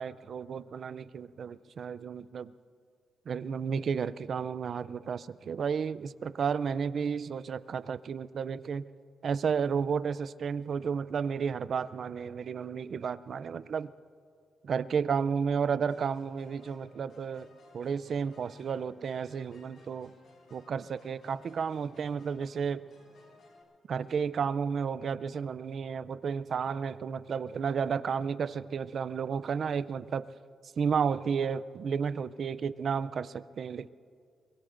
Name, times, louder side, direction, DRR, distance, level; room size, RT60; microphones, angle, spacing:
voice 1, 0.0-2.5 3.3-8.9 9.2-13.9 14.6-17.5 17.7-20.1 20.5-22.8 23.9-30.3 30.8-33.9, right 6 dB, 55° right, 16 dB, 0.4 m, -32 dB
sound 1, 15.9-23.6, left 2 dB, 70° left, 3.8 m, -59 dB
24.0 x 22.0 x 2.6 m, 2.3 s
cardioid pair, 110°, 0 cm